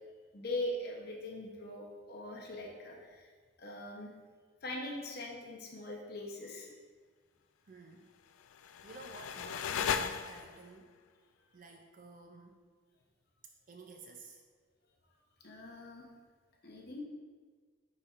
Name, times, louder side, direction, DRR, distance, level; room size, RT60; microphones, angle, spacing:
voice 1, 0.3-3.3 3.6-4.1 4.6-6.7 15.4-16.1 16.6-17.0, left 1 dB, 50° left, -1 dB, 0.8 m, -41 dB
voice 2, 7.7-8.1 8.8-11.0 11.5-12.6 13.7-14.4, right 3 dB, 40° right, 3 dB, 0.4 m, -52 dB
sound 1, 8.4-10.8, left 7 dB, 85° left, 0.3 m, -36 dB
9.8 x 4.2 x 2.4 m, 1.5 s
head